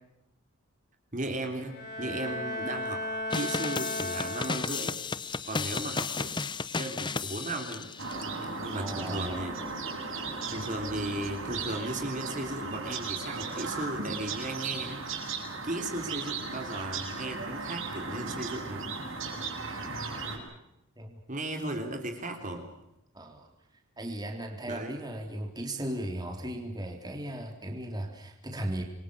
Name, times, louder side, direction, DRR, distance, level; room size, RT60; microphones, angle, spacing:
voice 1, 1.1-3.0 3.3-5.0 5.5-6.3 6.8-7.9 8.6-9.5 10.5-15.0 15.6-18.9 21.3-22.7 24.7-25.0, right 1 dB, 35° right, 5 dB, 3.6 m, -36 dB
Bowed string instrument, 1.7-5.1, left 1 dB, 50° left, 6.3 m, -35 dB
sound 1, 3.3-8.2, left 4 dB, 20° left, 0.8 m, -34 dB
sound 2, 8.0-20.4, right 4 dB, 65° right, 7.8 m, -36 dB
voice 2, 8.7-9.5 19.8-20.0 21.0-21.2 23.1-23.5 24.0-28.8, right 1 dB, 20° right, 3 dB, 3.5 m, -37 dB
27.5 x 24.0 x 6.4 m, 0.85 s
head